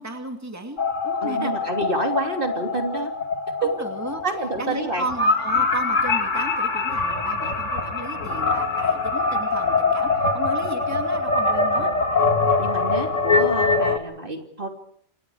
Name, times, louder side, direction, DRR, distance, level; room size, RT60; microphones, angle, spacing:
voice 1, 0.0-1.5 3.6-4.2 4.6-11.9, right 2 dB, 15° right, 4 dB, 2.6 m, -34 dB
sound 1, 0.8-14.0, left 3 dB, 85° left, 2.5 m, -23 dB
voice 2, 1.2-3.1 3.6-3.7 4.2-5.1 11.7-11.9 12.6-14.7, right 3 dB, 45° right, 4 dB, 3.3 m, -28 dB
29.5 x 26.0 x 4.9 m, 0.64 s
omnidirectional pair, 1.2 m